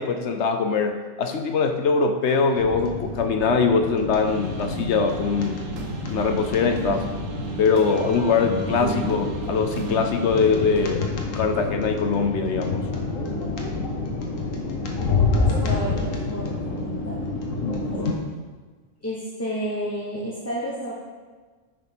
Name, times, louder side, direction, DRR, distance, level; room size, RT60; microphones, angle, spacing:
voice 1, 0.0-5.7 6.1-7.1 7.6-11.1 11.3-12.9, left 5 dB, 65° left, 6 dB, 1.0 m, -22 dB
sound 1, 2.5-18.1, left 3 dB, 90° left, 1.5 m, -28 dB
sound 2, 4.2-10.9, right 4 dB, 90° right, 1.4 m, -35 dB
voice 2, 15.3-17.2 19.0-20.9, equal, 15° left, -6 dB, 1.0 m, -31 dB
9.8 x 4.9 x 5.2 m, 1.4 s
omnidirectional pair, 1.3 m